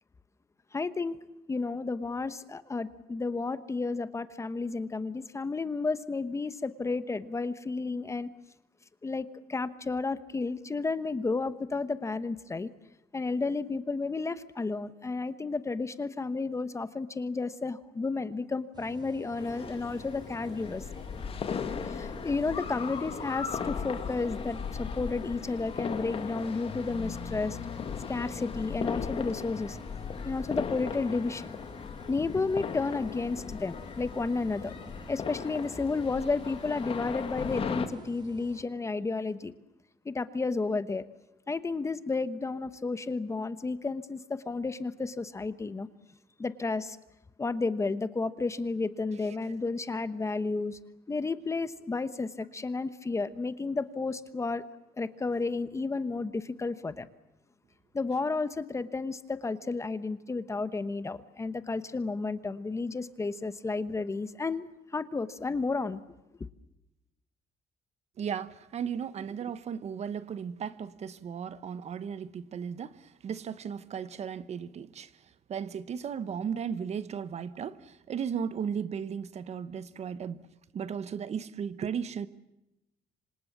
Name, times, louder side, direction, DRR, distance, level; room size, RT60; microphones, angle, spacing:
voice 1, 0.7-1.2 1.5-8.3 9.0-12.7 13.1-20.9 21.8-27.6 28.1-29.8 30.2-31.5 32.1-34.7 35.1-39.5 40.0-41.0 41.5-45.9 46.4-47.0 47.4-50.8 51.1-54.6 55.0-57.1 57.9-66.0, left 3 dB, 20° left, 1.1 m, -32 dB
sound 1, 18.7-38.6, right 3 dB, 25° right, 3.2 m, -52 dB
sound 2, 19.4-37.9, left 6 dB, 35° left, 2.3 m, -37 dB
voice 2, 68.2-75.1 75.5-80.4 80.7-82.3, right 7 dB, 40° right, 1.1 m, -35 dB
27.0 x 26.5 x 7.4 m
cardioid pair, 155°, 16 cm